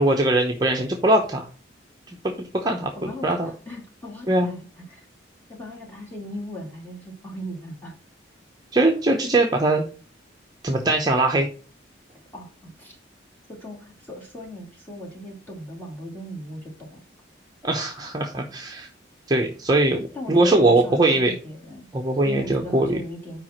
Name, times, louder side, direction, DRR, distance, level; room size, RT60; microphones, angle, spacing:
voice 1, 0.0-1.5 2.2-3.5 4.3-4.5 8.7-9.9 10.6-11.5 17.6-18.9 19.3-21.3 21.9-23.0, right 2 dB, 20° right, 1 dB, 0.7 m, -21 dB
voice 2, 3.0-5.1 5.5-7.9 12.3-13.0 13.5-17.0 20.1-21.9 22.2-23.4, equal, 10° left, -3 dB, 2.3 m, -38 dB
5.0 x 4.7 x 5.9 m, 0.38 s
head